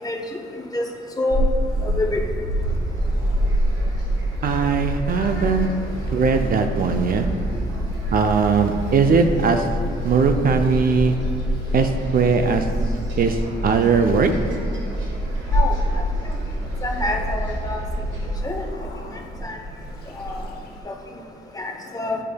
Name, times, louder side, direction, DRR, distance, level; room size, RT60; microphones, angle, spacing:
voice 1, 0.0-0.4 0.7-0.9 1.2-1.5 1.8-2.2 15.5-15.8 16.8-17.8 18.4-18.6 19.4-19.6 20.2-20.4 20.9-21.0 21.5-22.2, left 2 dB, 20° left, 2 dB, 0.7 m, -26 dB
Purr / Meow, 1.3-20.8, right 1 dB, 50° left, 1.1 m, -29 dB
sound 1, 2.6-18.4, equal, 75° right, 1.3 m, -28 dB
voice 2, 4.4-5.7 6.1-7.2 8.1-9.7 10.0-11.2 11.7-12.7 13.2-13.4 13.6-14.3, right 5 dB, 45° right, 6 dB, 0.4 m, -19 dB
9.6 x 5.0 x 2.2 m, 2.6 s
cardioid pair, 90°, 20 cm